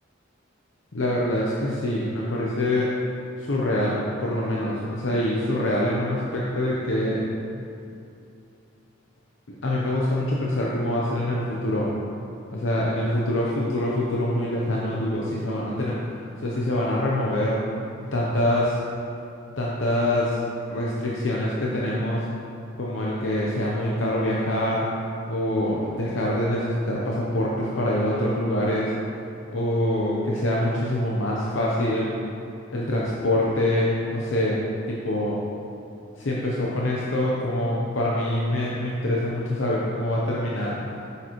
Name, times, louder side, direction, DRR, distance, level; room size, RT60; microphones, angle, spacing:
voice 1, 0.9-2.9 3.4-7.2 9.5-11.9 12.5-16.0 16.4-17.6 18.1-18.8 19.6-20.4 20.7-22.3 22.8-24.9 25.3-28.9 29.5-32.1 32.7-34.6 34.9-35.4 36.2-40.8, left 1 dB, 65° left, -5 dB, 0.8 m, -25 dB
9.2 x 6.8 x 3.1 m, 2.6 s
head